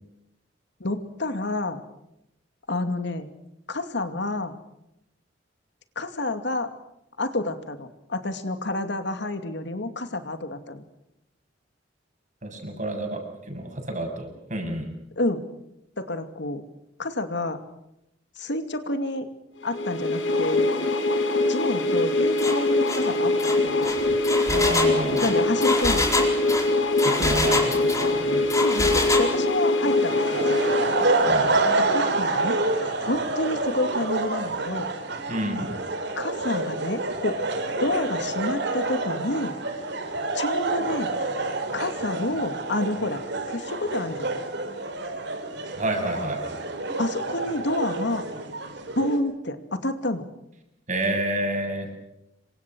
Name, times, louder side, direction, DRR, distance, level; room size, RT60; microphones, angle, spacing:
voice 1, 0.8-1.8 2.7-3.3 3.7-4.5 6.0-6.7 7.2-10.8 15.2-15.5 16.0-16.6 17.0-17.6 18.4-19.3 19.6-20.7 21.5-23.3 23.6-23.9 25.2-26.3 28.6-30.2 31.8-32.6 32.8-34.9 36.2-37.4 37.8-39.6 40.3-41.1 41.7-44.3 47.0-48.2 49.0-50.3, left 2 dB, 65° left, 8 dB, 2.6 m, -29 dB
voice 2, 12.4-13.2 13.5-14.9 24.5-25.3 27.0-28.5 31.3-31.5 35.3-35.7 45.8-46.6 50.9-51.9, right 1 dB, 40° right, 4 dB, 7.5 m, -29 dB
sound 1, 19.7-31.5, left 2 dB, 90° left, 5.4 m, -23 dB
Engine, 22.4-22.6 22.9-23.1 23.4-28.1 28.5-29.3, left 2 dB, 15° left, 4.7 m, -26 dB
sound 2, 29.8-49.2, right 2 dB, 65° right, 4.2 m, -28 dB
28.0 x 25.0 x 6.3 m, 0.83 s
head